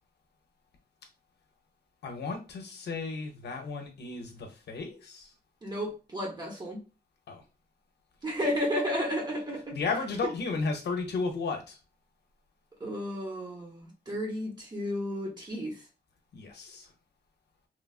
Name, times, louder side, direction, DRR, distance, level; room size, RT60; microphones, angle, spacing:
voice 1, 2.0-5.3 7.3-7.4 9.7-11.8 16.3-16.9, left 4 dB, 70° left, 0.7 m, -34 dB
voice 2, 5.6-6.8 8.2-9.8 12.8-15.8, equal, 25° right, 0.9 m, -32 dB
3.2 x 2.3 x 2.4 m
wide cardioid pair, 160°, 18 cm